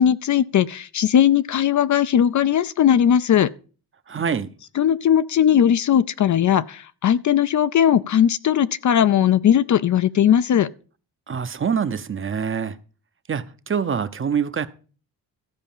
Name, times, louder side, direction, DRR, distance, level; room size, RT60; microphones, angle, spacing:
voice 1, 0.0-3.5 4.8-10.7, left 9 dB, 50° left, 0.5 m, -18 dB
voice 2, 4.1-4.5 11.3-12.8 13.3-14.7, right 7 dB, 35° right, 0.7 m, -25 dB
14.0 x 4.9 x 7.2 m
cardioid pair, 110°, 39 cm